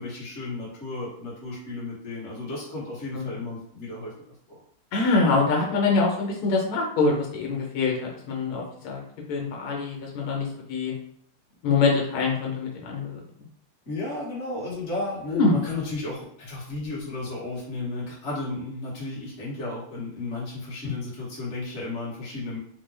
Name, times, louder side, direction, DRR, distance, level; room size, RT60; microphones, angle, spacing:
voice 1, 0.0-4.1 4.5-4.6 13.9-22.6, left 2 dB, 35° left, -6 dB, 1.3 m, -33 dB
voice 2, 4.9-9.0 9.3-10.9 11.6-13.2 15.3-15.5, left 3 dB, 80° left, -1 dB, 1.7 m, -24 dB
4.3 x 2.2 x 3.3 m, 0.65 s
omnidirectional pair, 2.4 m